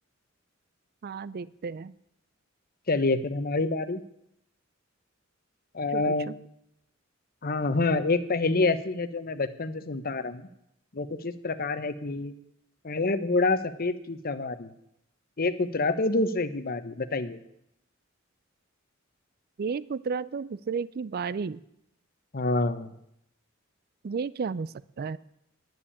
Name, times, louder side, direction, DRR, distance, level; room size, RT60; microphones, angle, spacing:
voice 1, 1.0-1.9 5.9-6.3 19.6-21.6 24.0-24.7 25.0-25.2, right 5 dB, 50° right, 19 dB, 0.4 m, -32 dB
voice 2, 2.9-4.0 5.7-6.3 7.4-10.4 10.9-12.3 12.8-14.7 15.4-17.4 22.3-22.9, left 3 dB, 50° left, 12 dB, 0.9 m, -27 dB
10.5 x 10.0 x 8.5 m, 0.77 s
head